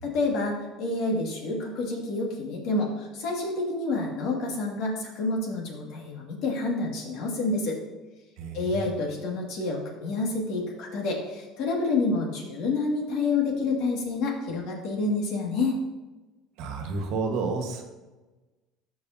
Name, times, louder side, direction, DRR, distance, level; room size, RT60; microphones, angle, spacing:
voice 1, 0.0-7.8 8.5-15.8, left 3 dB, 65° left, -1 dB, 2.2 m, -28 dB
voice 2, 16.6-17.8, right 4 dB, 70° right, 4 dB, 1.4 m, -30 dB
13.0 x 5.0 x 2.8 m, 1.2 s
supercardioid pair, 115°, 0 cm